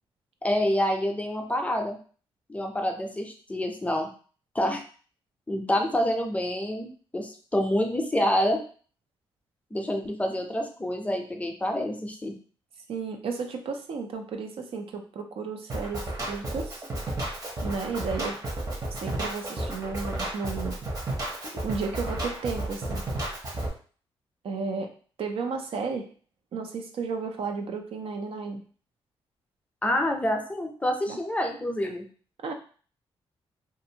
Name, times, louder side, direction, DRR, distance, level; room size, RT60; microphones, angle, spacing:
voice 1, 0.4-2.0 2.5-4.1 4.5-4.8 5.5-8.6 9.7-12.3 29.8-32.0, left 1 dB, 15° left, 3 dB, 0.5 m, -27 dB
voice 2, 12.9-16.8 17.6-18.4 18.9-20.8 21.6-23.0 24.4-24.9 25.2-26.1 26.5-28.6 31.1-31.2 32.4-32.5, right 4 dB, 65° right, 4 dB, 0.5 m, -33 dB
Drum kit, 15.7-23.7, right 1 dB, 35° right, 0.9 m, -32 dB
2.5 x 2.5 x 2.7 m, 0.42 s
cardioid pair, 85°, 10 cm